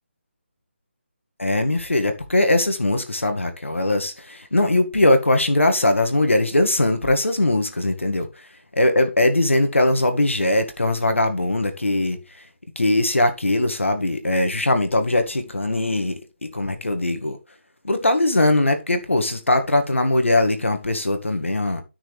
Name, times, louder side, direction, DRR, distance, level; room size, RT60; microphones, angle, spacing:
voice 1, 1.4-8.5 8.8-12.5 12.8-17.4 17.8-21.8, left 1 dB, 90° left, 2.0 m, -20 dB
14.0 x 6.1 x 3.3 m
figure-of-eight pair, 155°, 7 cm